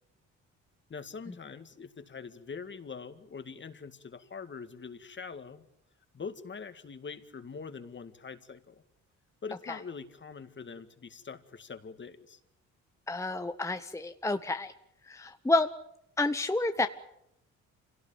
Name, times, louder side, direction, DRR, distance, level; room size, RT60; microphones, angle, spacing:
voice 1, 0.9-5.6 6.1-8.8 9.4-12.4, left 5 dB, 40° left, 10 dB, 2.1 m, -43 dB
voice 2, 13.1-14.7 15.0-15.7 16.2-16.9, left 2 dB, 10° left, 8 dB, 1.0 m, -29 dB
26.0 x 17.5 x 9.0 m, 0.82 s
cardioid pair, 90°, 30 cm